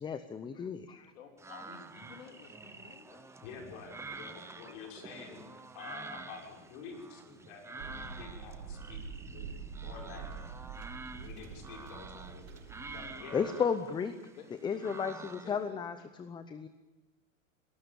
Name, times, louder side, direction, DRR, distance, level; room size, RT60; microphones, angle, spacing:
voice 1, 0.0-1.1 13.3-14.1 14.6-16.7, left 6 dB, 10° left, 11 dB, 0.7 m, -34 dB
voice 2, 0.8-3.5 14.4-14.7 15.4-16.1, left 7 dB, 85° left, 4 dB, 3.6 m, -53 dB
sound 1, 1.4-15.7, right 3 dB, 5° right, 0.9 m, -48 dB
voice 3, 3.4-5.5 5.7-9.0 9.3-9.5 9.8-10.4 11.1-12.6 12.9-13.4, left 5 dB, 50° left, 1 dB, 6.4 m, -48 dB
sound 2, 7.8-13.1, right 5 dB, 75° right, 6.1 m, -45 dB
24.0 x 19.0 x 7.0 m, 1.2 s
supercardioid pair, 145°, 39 cm